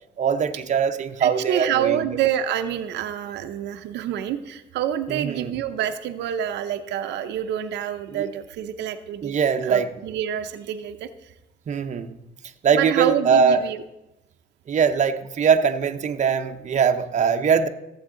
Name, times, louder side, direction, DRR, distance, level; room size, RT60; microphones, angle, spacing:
voice 1, 0.2-2.1 5.1-5.5 8.1-8.3 9.2-9.9 11.7-12.2 12.6-13.6 14.7-17.7, right 6 dB, 45° right, 0.7 m, -21 dB
voice 2, 1.2-9.4 9.6-11.1 12.7-13.8, right 10 dB, 90° right, 0.7 m, -27 dB
15.0 x 7.8 x 3.8 m
cardioid pair, 100°, 18 cm